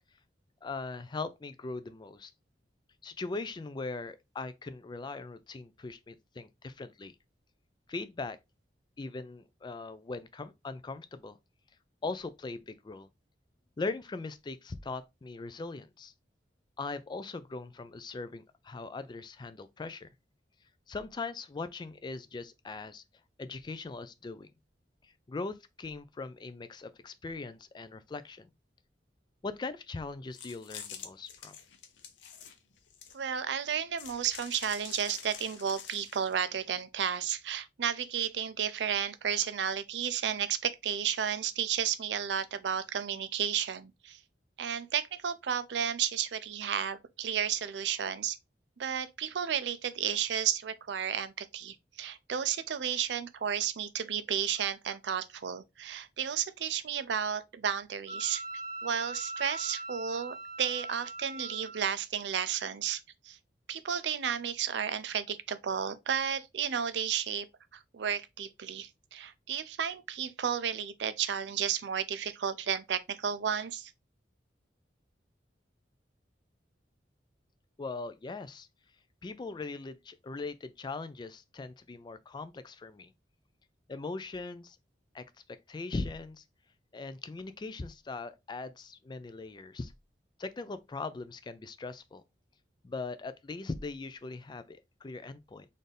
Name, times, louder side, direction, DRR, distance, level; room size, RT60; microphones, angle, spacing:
voice 1, 0.6-2.3 3.0-7.2 7.9-8.4 9.0-11.4 12.0-13.1 13.8-16.1 16.8-20.1 20.9-23.0 23.4-24.5 25.0-28.5 29.4-31.5 77.8-78.7 79.2-83.1 83.9-84.8 85.1-85.2 85.7-86.4 86.9-89.9 90.4-92.2 92.8-95.7, left 3 dB, 25° left, 0.3 m, -40 dB
sound 1, 30.3-33.4 34.0-36.3, left 8 dB, 85° left, 0.7 m, -46 dB
voice 2, 33.1-44.2 44.6-48.4 48.8-58.4 58.8-63.0 63.2-63.4 63.7-67.5 67.7-73.9, right 8 dB, 70° right, 0.5 m, -32 dB
Wind instrument woodwind instrument, 58.1-61.8, right 2 dB, 20° right, 0.8 m, -41 dB
4.1 x 2.6 x 3.3 m
head